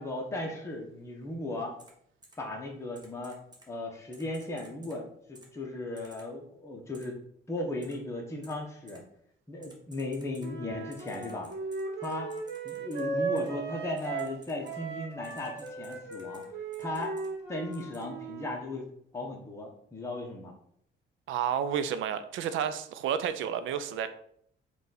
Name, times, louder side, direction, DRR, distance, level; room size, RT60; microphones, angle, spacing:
voice 1, 0.0-1.7 2.4-3.4 3.7-7.2 7.5-9.0 9.5-11.5 12.0-12.3 12.6-16.5 16.8-17.2 17.5-18.9 19.1-20.5, left 2 dB, 15° left, -1 dB, 0.8 m, -36 dB
Typing, 1.8-1.9 2.2-2.3 2.9-3.7 4.1-5.0 5.3-5.5 6.0-6.2 6.9-7.0 7.8-7.9 8.4-8.5 8.9-9.0 9.6-10.5 10.9-13.0 13.4-13.5 14.0-14.8 15.2-16.5 16.7-17.3 17.7-18.0, right 2 dB, 20° right, 1.0 m, -55 dB
Wind instrument woodwind instrument, 10.4-14.4 14.6-18.6, right 4 dB, 60° right, 1.1 m, -37 dB
voice 2, 21.3-24.1, right 8 dB, 80° right, 12 dB, 0.4 m, -31 dB
4.0 x 2.4 x 3.9 m, 0.67 s
cardioid pair, 90°, 20 cm